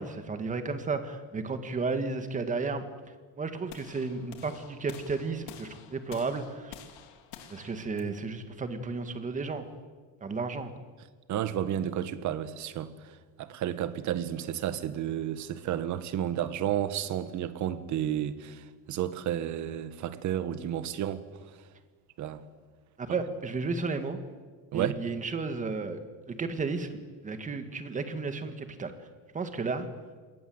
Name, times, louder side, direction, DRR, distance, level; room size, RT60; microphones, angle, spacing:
voice 1, 0.0-2.8 3.4-6.7 7.5-9.7 10.2-10.7 23.0-24.2 24.7-26.0 26.3-26.9 27.2-29.1 29.3-29.9, right 4 dB, 20° right, 1.9 m, -33 dB
sound 1, 3.7-9.8, left 9 dB, 80° left, 3.4 m, -50 dB
voice 2, 11.3-21.2 22.2-22.4 24.7-25.0, right 10 dB, 45° right, 1.6 m, -32 dB
27.0 x 21.5 x 8.0 m
cardioid pair, 170°, 40 cm